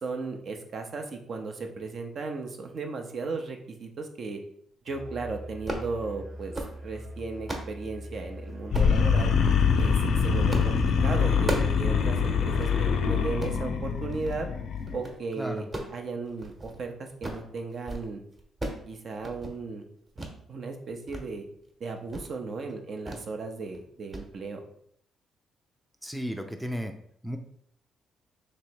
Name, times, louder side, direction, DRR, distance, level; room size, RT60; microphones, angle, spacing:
voice 1, 0.0-4.4 4.9-9.3 9.8-14.5 14.9-15.7 15.9-18.2 18.9-19.8 20.5-21.5 21.8-24.6, right 4 dB, 55° right, 4 dB, 0.7 m, -36 dB
Musical instrument, 4.9-11.2, equal, 70° right, 1.3 m, -42 dB
sound 1, 5.7-5.9 6.4-6.8 7.2-7.7 8.7-9.0 9.6-9.9 10.5-10.8 11.1-11.8 12.1-12.2 12.5-12.7 13.2-13.6 14.1-14.4 14.8-15.2 15.6-16.8 17.1-17.5 17.7-18.1 18.3-18.9 19.1-19.6 20.2-20.4 20.8-21.2 21.6-21.7 22.1-22.3 23.1-23.3 23.6-23.8 24.1-24.3, right 1 dB, 30° right, 1.1 m, -36 dB
sound 2, 8.7-15.0, left 6 dB, 65° left, 0.5 m, -24 dB
voice 2, 26.0-26.9 27.2-27.4, equal, ahead, 4 dB, 0.4 m, -33 dB
3.1 x 3.0 x 4.6 m, 0.67 s
cardioid pair, 90°, 0 cm